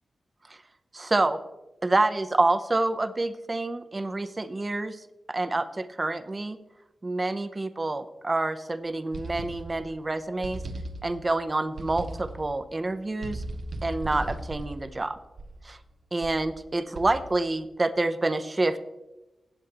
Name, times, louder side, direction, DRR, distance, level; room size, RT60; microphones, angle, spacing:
voice 1, 0.9-1.4 1.8-5.0 5.3-6.6 7.0-10.6 11.0-13.4 13.8-15.2 15.6-15.8 16.1-18.8, right 2 dB, 35° right, 11 dB, 0.7 m, -27 dB
sound 1, 9.1-10.0 10.4-11.4 11.8-12.6 13.2-15.7 16.2-16.5 17.0-17.5, right 2 dB, 70° right, 0.8 m, -37 dB
15.5 x 8.1 x 2.9 m, 1.0 s
cardioid pair, 50°, 0 cm